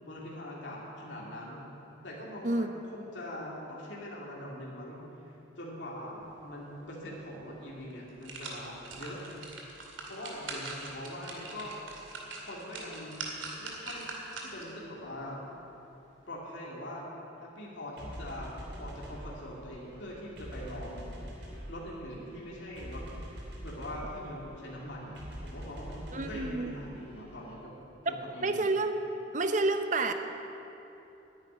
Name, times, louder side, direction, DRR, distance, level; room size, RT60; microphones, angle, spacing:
voice 1, 0.1-1.7 2.0-9.2 10.0-11.7 12.4-13.3 13.6-14.1 14.4-15.4 16.3-17.0 17.4-18.5 18.8-21.1 21.7-23.0 23.6-27.7 28.0-28.7, left 1 dB, 70° left, -4 dB, 2.6 m, -42 dB
sound 1, 7.3-7.4 7.9-14.8 15.2-15.3, right 3 dB, 85° right, 2.3 m, -42 dB
sound 2, 18.0-27.5, equal, 65° right, 2.9 m, -45 dB
voice 2, 26.1-26.7 28.4-29.0 29.3-30.1, right 2 dB, 40° right, 7 dB, 0.8 m, -29 dB
10.0 x 9.6 x 9.8 m, 2.9 s
head